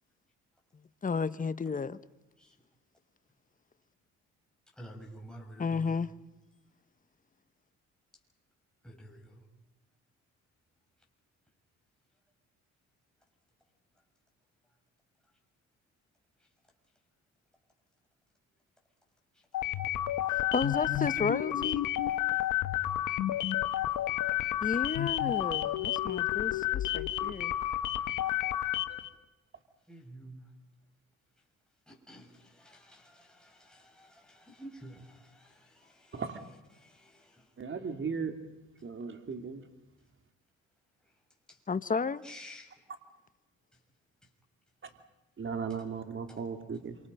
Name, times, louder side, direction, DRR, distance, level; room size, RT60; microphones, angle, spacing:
voice 1, 0.7-2.0 5.6-6.1 20.3-21.8 24.6-27.5 41.7-42.2, left 5 dB, 25° left, 1.1 m, -32 dB
voice 2, 4.8-6.0 8.8-9.5 16.4-16.5 19.3-19.8 29.9-30.5 31.9-36.2 36.7-37.8 41.5-41.6 42.2-42.8 45.7-45.8 46.3-46.4, equal, ahead, 7.0 m, -51 dB
sound 1, 19.5-29.1, left 13 dB, 85° left, 1.2 m, -31 dB
voice 3, 37.6-38.3 38.8-39.6 44.8-44.9 45.4-47.0, right 5 dB, 40° right, 3.0 m, -36 dB
27.5 x 26.5 x 5.6 m
cardioid pair, 90°, 30 cm